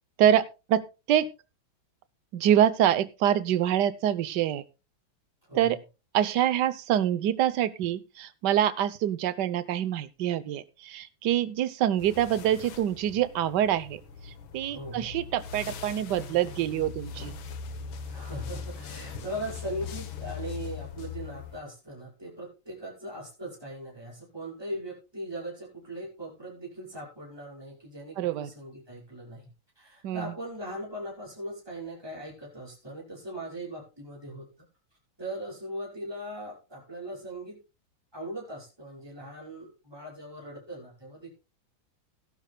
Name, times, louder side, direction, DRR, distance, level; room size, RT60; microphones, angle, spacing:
voice 1, 0.2-0.8 1.1-1.3 2.3-4.6 5.5-5.8 6.1-14.0 14.5-17.3 28.2-28.5 30.0-30.3, right 11 dB, 65° right, 15 dB, 1.4 m, -25 dB
sound 1, 12.0-21.6, left 6 dB, 80° left, 2.0 m, -40 dB
voice 2, 14.7-15.1 18.1-29.5 29.8-34.5 35.2-37.6 38.1-41.3, right 1 dB, 10° right, -3 dB, 5.6 m, -39 dB
17.0 x 11.5 x 2.3 m, 0.29 s
omnidirectional pair, 2.2 m